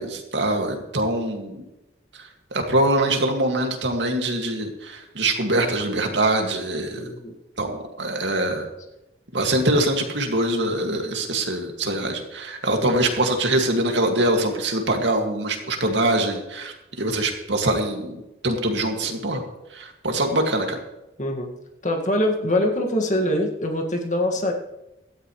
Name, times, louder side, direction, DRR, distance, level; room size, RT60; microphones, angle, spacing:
voice 1, 0.0-1.6 2.2-7.1 7.6-8.7 9.3-19.4 19.7-20.8, right 1 dB, 80° right, 3 dB, 2.3 m, -23 dB
voice 2, 7.0-7.3 12.8-12.9 21.2-21.5 21.8-24.5, left 1 dB, 40° left, 2 dB, 2.0 m, -23 dB
17.0 x 13.0 x 3.3 m, 0.94 s
head